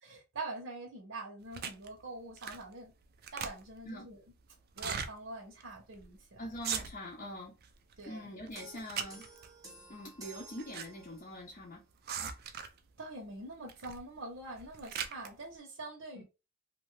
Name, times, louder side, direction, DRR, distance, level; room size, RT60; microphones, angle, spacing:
voice 1, 0.0-2.9 3.3-4.2 4.8-6.5 8.0-8.3 13.0-16.2, right 2 dB, 70° right, 0.8 m, -44 dB
sound 1, 1.5-1.9 2.4-2.7 3.0-3.9 4.7-5.1 5.6-5.7 5.9-6.2 6.5-7.2 7.6-8.1 8.5-9.5 10.3-10.9 11.1-11.2 12.1-12.8 13.7-14.0 14.4-15.3, right 7 dB, 50° right, 0.4 m, -39 dB
voice 2, 6.4-7.5 8.1-9.3 9.9-11.8 16.1-16.2, left 1 dB, 40° left, 0.6 m, -44 dB
sound 2, 8.5-11.4, right 2 dB, 20° right, 0.8 m, -53 dB
2.7 x 2.2 x 3.1 m
head